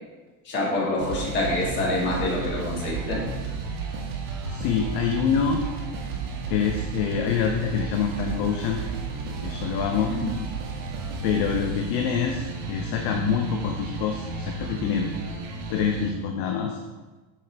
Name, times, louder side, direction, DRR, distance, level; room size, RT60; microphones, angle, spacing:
voice 1, 0.5-3.2 10.1-10.3, left 2 dB, 25° left, -4 dB, 1.7 m, -26 dB
sound 1, 1.0-16.1, right 4 dB, 55° right, 1.1 m, -33 dB
voice 2, 4.5-5.6 6.5-8.8 9.4-10.1 11.2-15.1 15.7-16.8, left 7 dB, 40° left, 3 dB, 0.5 m, -26 dB
7.5 x 4.8 x 3.3 m, 1.2 s
supercardioid pair, 165°, 43 cm